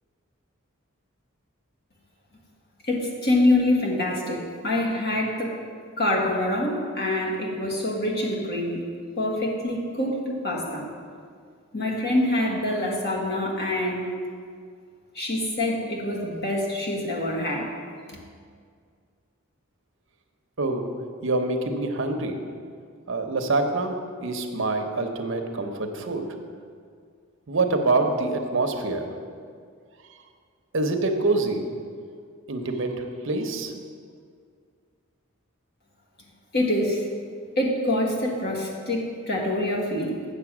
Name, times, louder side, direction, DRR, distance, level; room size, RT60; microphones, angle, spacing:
voice 1, 2.8-5.5 6.0-8.8 9.2-10.9 11.7-14.1 15.1-17.7 18.1-18.2 36.5-37.1 37.6-40.2, left 1 dB, 50° left, -2 dB, 1.6 m, -25 dB
voice 2, 20.6-20.9 21.2-22.4 23.1-26.3 27.5-29.1 30.7-31.6 32.5-33.7, right 2 dB, 65° right, 5 dB, 0.8 m, -26 dB
8.2 x 6.8 x 6.0 m, 2.1 s
head